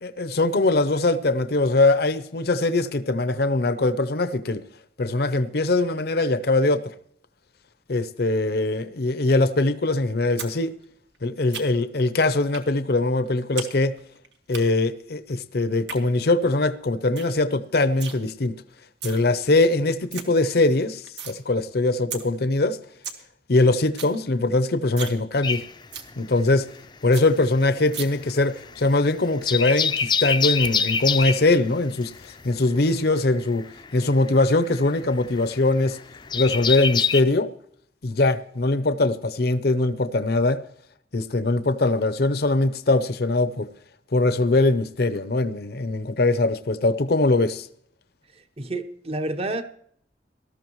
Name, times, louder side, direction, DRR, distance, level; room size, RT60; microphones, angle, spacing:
voice 1, 0.0-4.6 5.0-6.9 7.9-10.7 11.2-14.0 14.5-18.6 19.0-22.8 23.5-25.7 26.2-26.7 27.0-33.6 33.9-36.0 36.3-37.5 38.0-40.6 41.1-43.7 44.1-47.7, left 2 dB, 60° left, 0.7 m, -22 dB
sound 1, 10.4-10.5 10.8-12.0 12.5-12.7 13.0-13.7 14.0-14.6 15.6-16.0 16.5-16.6 16.8-16.9 17.2-17.4 17.6-18.2 18.8-19.2 19.6-19.7 19.9-20.2 20.6-21.4 21.7-21.8 22.1-22.2 22.6-22.7 22.9-23.2 23.5-23.6 23.8-24.2 24.5-24.6 24.9-25.2 25.5-25.6 25.9-26.1 26.5-26.6 26.8-26.9 27.1-27.3 27.9-28.1, right 7 dB, 80° right, 1.8 m, -35 dB
sound 2, 25.4-26.9 27.1-37.2, left 6 dB, 25° left, 0.5 m, -26 dB
voice 2, 48.6-49.6, right 2 dB, 35° right, 1.0 m, -29 dB
18.5 x 13.5 x 3.1 m
head